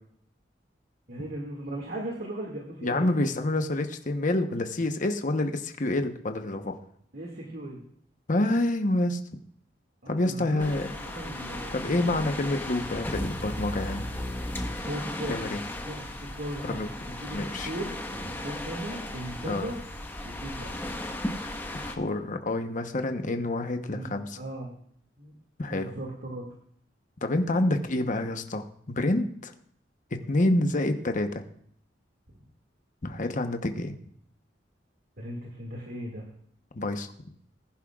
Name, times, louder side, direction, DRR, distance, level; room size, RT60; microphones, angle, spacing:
voice 1, 1.1-3.2 7.1-7.8 10.0-12.1 14.8-15.4 15.8-19.8 20.2-20.7 23.9-24.8 25.2-25.3 25.7-26.5 35.2-36.3, right 1 dB, 60° right, -1 dB, 2.1 m, -38 dB
voice 2, 2.8-6.8 8.3-9.2 10.1-10.9 11.7-14.0 15.3-15.6 16.7-16.9 17.3-17.7 19.5-19.7 21.8-24.4 25.6-25.9 27.2-29.5 30.1-31.4 33.0-34.0 36.7-37.1, left 2 dB, 45° left, 7 dB, 1.0 m, -28 dB
sound 1, 10.6-22.0, left 1 dB, 10° left, 1.3 m, -36 dB
20.5 x 11.0 x 2.4 m, 0.65 s
head